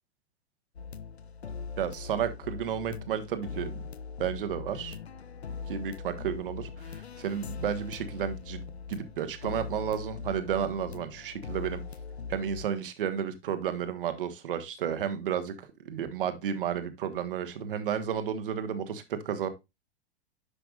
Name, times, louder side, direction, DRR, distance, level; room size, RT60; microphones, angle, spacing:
sound 1, 0.7-12.6, left 5 dB, 80° left, 0.6 m, -41 dB
voice 1, 1.8-3.8 4.2-4.9 5.7-11.8 12.3-15.5 15.8-19.5, right 8 dB, 55° right, 10 dB, 1.3 m, -32 dB
10.0 x 5.9 x 2.4 m, 0.22 s
figure-of-eight pair, 100°, 32 cm